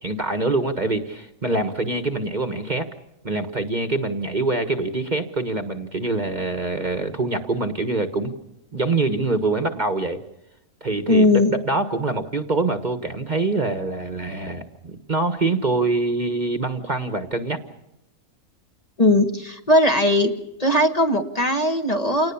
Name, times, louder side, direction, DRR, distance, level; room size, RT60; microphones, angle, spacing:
voice 1, 0.0-2.9 3.2-8.3 8.7-10.2 10.8-17.6, right 3 dB, 30° right, 8 dB, 1.3 m, -25 dB
voice 2, 11.1-11.5 19.0-20.3 20.6-22.3, left 1 dB, 25° left, 5 dB, 1.5 m, -18 dB
28.5 x 19.0 x 7.1 m, 0.88 s
omnidirectional pair, 1.6 m